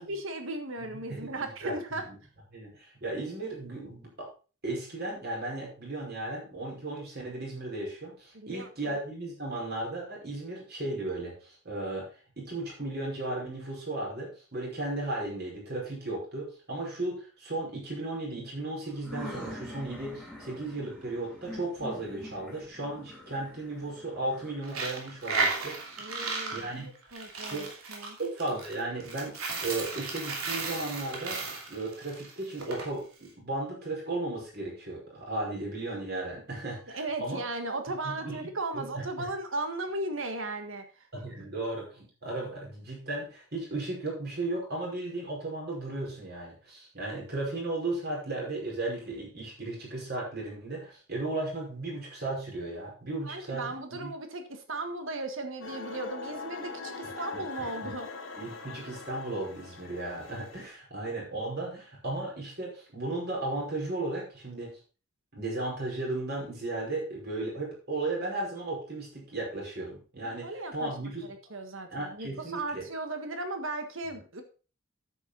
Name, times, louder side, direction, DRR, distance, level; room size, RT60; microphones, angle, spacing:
voice 1, 0.0-2.0 8.3-9.0 26.0-26.7 27.1-28.2 36.9-41.1 53.2-58.1 70.2-74.4, right 2 dB, 60° right, 7 dB, 1.6 m, -36 dB
voice 2, 0.8-1.7 2.1-2.2 2.5-4.3 4.6-26.0 26.5-26.9 27.4-27.7 28.2-31.4 31.7-37.4 38.0-38.4 38.7-39.3 41.1-54.1 57.3-57.9 58.4-64.7 65.3-71.3 71.9-72.9, right 2 dB, 45° right, -2 dB, 5.2 m, -35 dB
sound 1, 18.9-26.4, left 1 dB, 5° right, 3.0 m, -45 dB
Coin (dropping), 24.6-32.9, right 4 dB, 80° right, 2.8 m, -34 dB
sound 2, 55.6-60.7, left 4 dB, 65° left, 1.8 m, -42 dB
9.6 x 8.0 x 4.1 m, 0.34 s
head